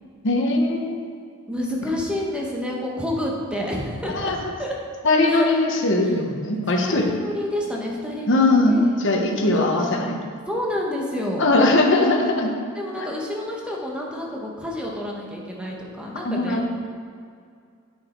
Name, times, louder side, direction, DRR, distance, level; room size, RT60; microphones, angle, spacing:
voice 1, 0.2-1.1 4.1-4.4 5.0-7.1 8.3-10.2 11.4-12.5 13.0-13.1 16.2-16.6, left 2 dB, 60° left, 1 dB, 1.1 m, -20 dB
voice 2, 1.5-4.3 4.6-4.8 5.2-5.5 6.0-6.1 6.8-8.9 9.3-10.0 10.5-11.5 12.7-16.7, left 1 dB, 5° right, -2 dB, 1.1 m, -29 dB
8.3 x 6.4 x 4.4 m, 2.2 s
head